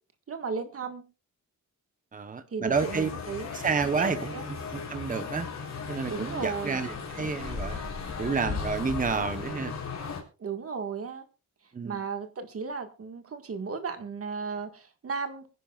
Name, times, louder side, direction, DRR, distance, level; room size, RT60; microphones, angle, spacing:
voice 1, 0.3-1.1 2.5-3.6 3.9-4.5 6.1-6.8 10.4-11.2 11.8-15.5, right 5 dB, 45° right, 6 dB, 1.8 m, -35 dB
voice 2, 2.1-3.1 3.5-5.5 5.9-7.8 8.2-9.8 11.7-12.0, right 5 dB, 25° right, 9 dB, 1.0 m, -30 dB
sound 1, 2.7-10.2, left 5 dB, 55° left, 3.7 m, -36 dB
24.5 x 10.5 x 2.4 m, 0.34 s
wide cardioid pair, 175°, 32 cm